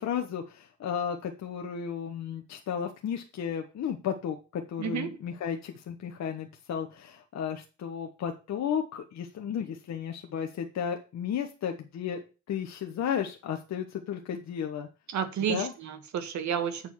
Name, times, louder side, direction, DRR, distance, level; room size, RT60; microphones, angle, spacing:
voice 1, 0.0-12.2 12.5-14.9 15.5-15.7, left 8 dB, 65° left, 4 dB, 1.2 m, -33 dB
voice 2, 4.8-5.2 15.1-16.9, right 8 dB, 70° right, 8 dB, 1.7 m, -31 dB
8.1 x 4.4 x 7.1 m, 0.32 s
cardioid pair, 90°, 30 cm